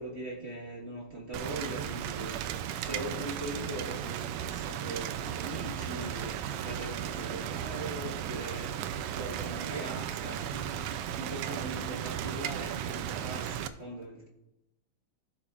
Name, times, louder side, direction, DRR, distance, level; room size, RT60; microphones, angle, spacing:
voice 1, 0.0-14.3, right 1 dB, 40° right, -3 dB, 0.9 m, -41 dB
Rain, 1.3-13.7, right 10 dB, 85° right, 1.5 m, -35 dB
15.5 x 7.2 x 2.4 m, 0.89 s
omnidirectional pair, 3.4 m